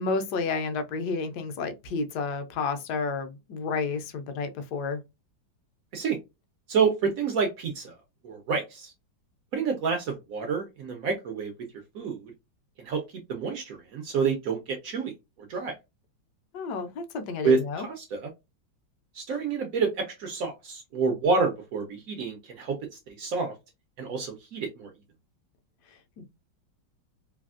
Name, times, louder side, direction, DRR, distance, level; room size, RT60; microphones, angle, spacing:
voice 1, 0.0-5.0 16.5-17.8 26.2-26.3, left 4 dB, 70° left, 1.0 m, -31 dB
voice 2, 6.7-7.9 8.2-8.9 9.5-11.5 11.9-12.3 12.8-13.0 13.3-15.1 15.5-15.7 17.4-18.3 19.1-22.8 23.2-23.5 24.0-24.9, right 5 dB, 80° right, 0.7 m, -28 dB
3.3 x 2.4 x 2.4 m
omnidirectional pair, 2.2 m